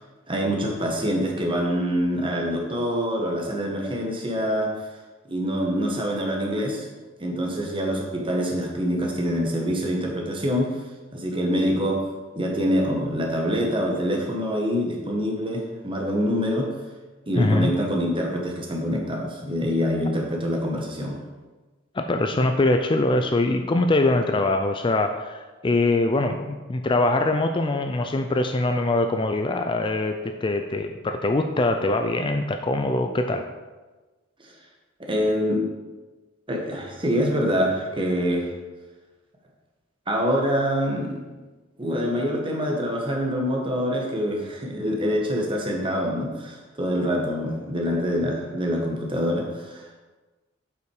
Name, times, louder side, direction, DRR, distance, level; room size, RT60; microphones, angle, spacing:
voice 1, 0.3-4.7 5.3-6.9 7.2-10.8 11.1-12.0 12.3-16.7 17.3-21.2 34.4-34.5 35.0-35.6 36.5-38.5 40.1-41.2 41.8-49.9, equal, 25° right, 0 dB, 1.5 m, -25 dB
voice 2, 17.4-17.7 21.9-33.5, left 2 dB, 25° left, 6 dB, 0.4 m, -23 dB
8.0 x 5.8 x 4.8 m, 1.2 s
head